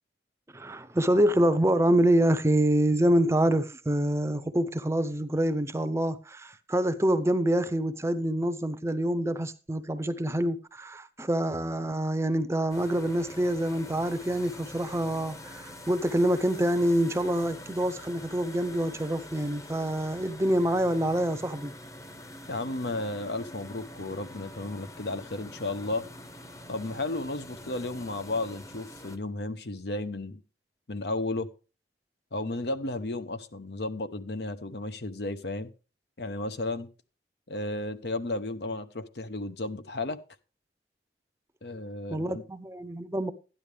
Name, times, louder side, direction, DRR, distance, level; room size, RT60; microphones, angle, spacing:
voice 1, 0.5-21.7 42.1-43.3, right 1 dB, 15° right, 0.7 m, -26 dB
sound 1, 12.7-29.2, left 1 dB, 20° left, 0.9 m, -45 dB
voice 2, 22.5-26.1 26.7-30.4 30.9-31.5 32.3-35.7 36.2-36.9 37.5-40.2 41.6-42.4, left 2 dB, 65° left, 0.9 m, -33 dB
12.5 x 10.0 x 3.4 m
head